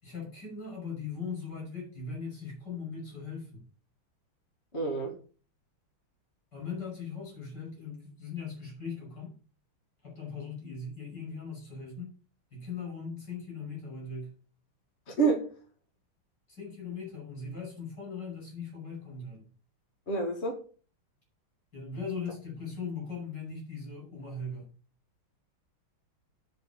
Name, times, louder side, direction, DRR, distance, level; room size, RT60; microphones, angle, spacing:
voice 1, 0.0-3.6 6.5-9.4 10.0-12.1 12.5-14.3 16.5-19.5 21.7-24.7, left 4 dB, 50° left, 6.5 m, -39 dB
voice 2, 4.7-5.1 15.1-15.5 20.1-20.6, right 4 dB, 30° left, 2.2 m, -28 dB
9.4 x 5.6 x 6.9 m
omnidirectional pair, 2.3 m